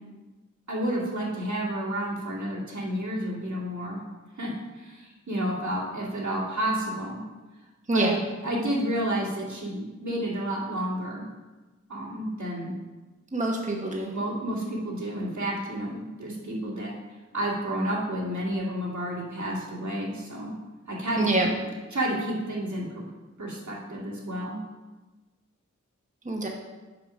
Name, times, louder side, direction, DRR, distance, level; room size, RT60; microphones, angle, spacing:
voice 1, 0.7-4.0 4.4-7.2 7.9-11.2 11.9-12.7 14.1-16.9 17.3-20.5 20.9-21.5 21.9-22.9 23.4-24.6, right 1 dB, 70° right, -5 dB, 2.3 m, -30 dB
voice 2, 13.3-14.1 21.2-21.5 26.3-26.5, right 2 dB, 25° right, 0 dB, 1.0 m, -25 dB
6.0 x 5.8 x 5.3 m, 1.2 s
wide cardioid pair, 50°, 30 cm